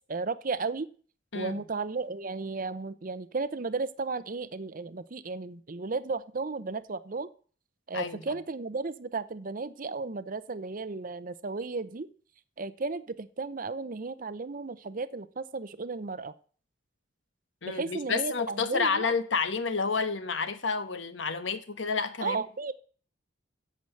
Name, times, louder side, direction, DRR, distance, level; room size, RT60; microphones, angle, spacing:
voice 1, 0.1-0.9 1.3-7.3 7.9-12.1 12.6-16.3 17.7-19.1 22.2-22.7, right 4 dB, 45° right, 0.6 m, -34 dB
voice 2, 17.6-22.4, left 5 dB, 75° left, 1.2 m, -30 dB
8.5 x 7.8 x 7.7 m
head